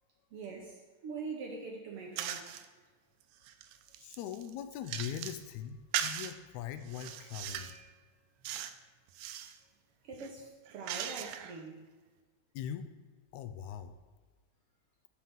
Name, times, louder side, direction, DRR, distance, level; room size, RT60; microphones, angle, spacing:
voice 1, 0.3-2.6 10.0-11.8, right 4 dB, 65° right, 0 dB, 1.5 m, -43 dB
sound 1, 2.2-2.7 3.2-5.4 5.9-6.3 6.9-7.8 8.4-8.8 9.1-9.6 10.1-11.6, right 10 dB, 85° right, 2.0 m, -39 dB
voice 2, 4.0-7.9 12.5-12.9 13.3-14.0, left 9 dB, 80° left, 9 dB, 1.9 m, -41 dB
13.0 x 4.6 x 3.6 m, 1.4 s
omnidirectional pair, 3.4 m